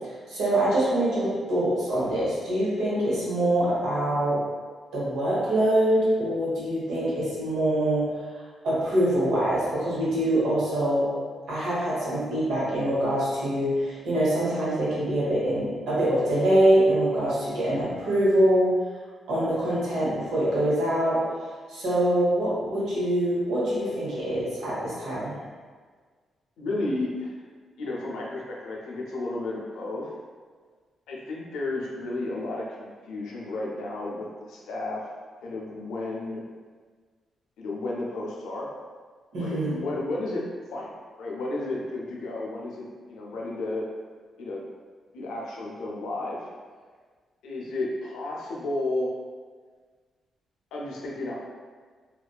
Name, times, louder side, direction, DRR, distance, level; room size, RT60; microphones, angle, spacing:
voice 1, 0.3-4.4 4.9-8.1 8.6-11.1 11.5-18.7 19.3-21.2 21.7-25.3 39.3-39.8, right 1 dB, 85° right, -8 dB, 0.9 m, -24 dB
voice 2, 26.6-27.3 27.8-30.1 31.1-35.1 35.4-36.4 37.6-38.7 39.4-40.4 40.7-43.8 44.4-44.6 45.1-46.5 47.4-49.1 50.7-51.4, left 2 dB, 85° left, -4 dB, 0.5 m, -32 dB
2.5 x 2.2 x 2.3 m, 1.5 s
supercardioid pair, 55°, 0 cm